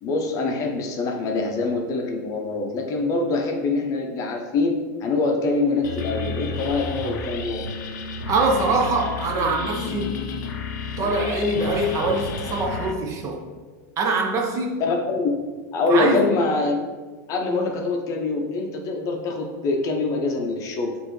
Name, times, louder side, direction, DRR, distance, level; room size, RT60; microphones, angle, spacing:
voice 1, 0.0-4.8 5.0-7.7 14.8-15.4 15.7-16.8 17.3-20.9, left 3 dB, 35° left, 2 dB, 0.7 m, -24 dB
sound 1, 5.8-12.9, left 5 dB, 80° left, 0.6 m, -32 dB
voice 2, 8.3-10.3 11.0-13.4 14.0-14.8 15.9-16.3, right 2 dB, 30° right, 3 dB, 0.6 m, -23 dB
6.6 x 2.6 x 3.1 m, 1.4 s
supercardioid pair, 140°, 10 cm